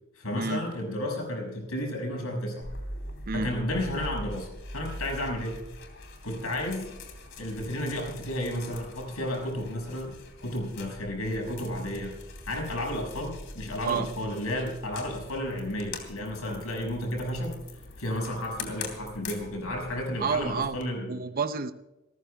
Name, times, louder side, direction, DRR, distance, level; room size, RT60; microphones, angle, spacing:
voice 1, 0.1-2.7 3.3-4.5 4.7-5.6 6.2-6.9 7.4-10.1 10.4-12.1 12.4-21.2, left 1 dB, 80° left, 0 dB, 6.0 m, -32 dB
sound 1, 2.6-20.9, left 2 dB, 55° left, 3.0 m, -43 dB
voice 2, 20.2-20.8 21.1-21.7, right 5 dB, 40° right, 11 dB, 0.6 m, -29 dB
28.0 x 14.5 x 2.3 m, 1.0 s
head